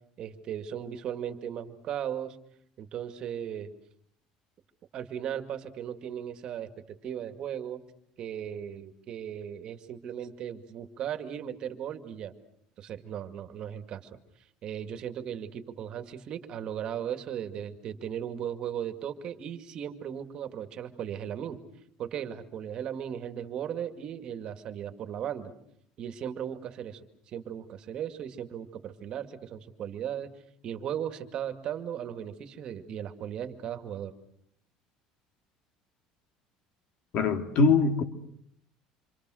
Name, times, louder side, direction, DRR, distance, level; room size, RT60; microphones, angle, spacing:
voice 1, 0.2-2.4 2.8-3.7 4.9-6.7 7.0-7.8 8.2-12.3 12.8-14.1 14.6-21.6 22.0-25.5 26.0-27.0 27.3-30.3 30.6-34.1, right 9 dB, 45° right, 2.2 m, -37 dB
voice 2, 37.1-38.0, left 4 dB, 50° left, 2.5 m, -22 dB
27.5 x 26.5 x 6.4 m
cardioid pair, 140°, 2 cm